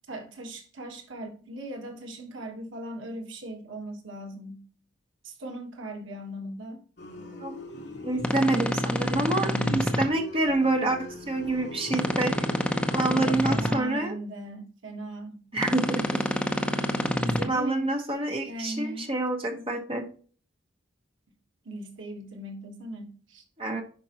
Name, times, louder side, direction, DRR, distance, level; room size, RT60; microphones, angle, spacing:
voice 1, 0.1-4.6 5.2-6.8 13.0-15.4 16.2-16.3 17.2-17.9 18.4-19.1 19.5-19.6 21.6-23.4, right 1 dB, 75° right, 1.4 m, -38 dB
sound 1, 7.0-13.3, left 1 dB, 55° left, 1.5 m, -41 dB
voice 2, 8.0-12.3 12.9-14.1 15.5-16.2 17.4-20.0 23.6-23.8, right 2 dB, 25° right, 1.2 m, -27 dB
sound 2, 8.2-10.0 11.9-13.7 15.6-17.4, equal, 5° left, 0.6 m, -27 dB
10.5 x 4.6 x 2.9 m
head